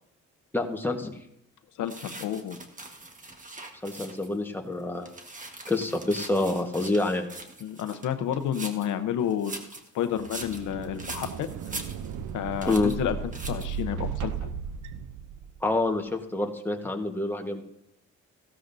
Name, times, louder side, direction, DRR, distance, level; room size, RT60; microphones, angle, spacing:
voice 1, 0.5-1.1 3.8-5.1 5.7-7.3 12.6-12.9 15.6-17.6, left 2 dB, 5° left, 2 dB, 1.4 m, -27 dB
voice 2, 1.8-2.6 7.6-9.5 9.9-11.5 12.3-13.2 13.5-14.5, left 9 dB, 80° left, 9 dB, 0.9 m, -30 dB
sound 1, 1.9-4.4 4.8-8.9 9.3-12.3 12.6-13.0 13.3-13.8, right 2 dB, 25° right, 1.5 m, -42 dB
sound 2, 10.1-15.7, right 6 dB, 75° right, 0.7 m, -36 dB
15.5 x 12.5 x 2.7 m, 0.79 s
cardioid pair, 90°, 30 cm